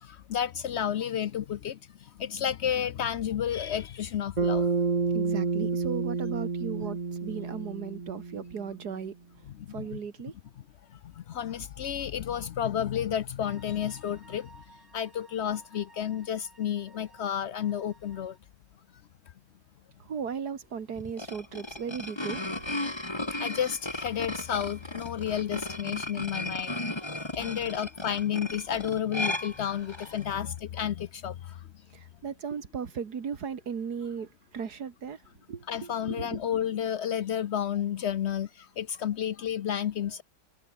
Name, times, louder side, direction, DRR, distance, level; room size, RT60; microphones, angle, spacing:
voice 1, 0.0-4.7 9.6-10.0 11.2-14.5 14.9-18.4 23.4-26.8 27.1-31.6 35.7-40.2, left 9 dB, 75° left, 0.6 m, -31 dB
Bass guitar, 4.4-8.8, right 4 dB, 30° right, 1.1 m, -29 dB
voice 2, 5.1-9.1 9.7-10.3 20.0-22.8 27.6-27.8 31.9-35.2 35.5-36.4, right 6 dB, 65° right, 2.3 m, -37 dB
sound 1, 13.4-18.4, right 3 dB, 85° right, 6.1 m, -56 dB
sound 2, 21.0-30.3, left 1 dB, 15° left, 2.5 m, -35 dB
omnidirectional pair, 1.9 m